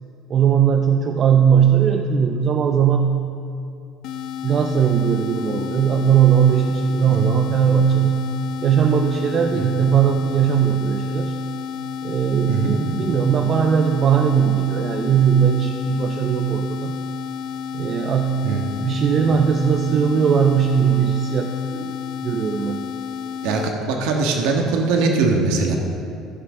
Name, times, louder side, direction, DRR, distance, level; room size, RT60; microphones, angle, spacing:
voice 1, 0.3-3.2 4.4-8.3 8.6-11.4 12.0-17.0 17.7-22.0 22.2-22.9, right 8 dB, 35° right, 4 dB, 0.5 m, -19 dB
sound 1, 4.0-23.7, left 7 dB, 65° left, 0.7 m, -31 dB
voice 2, 23.4-25.8, right 3 dB, 85° right, 2 dB, 1.4 m, -21 dB
14.5 x 6.1 x 6.1 m, 2.5 s
cardioid pair, 135°, 0 cm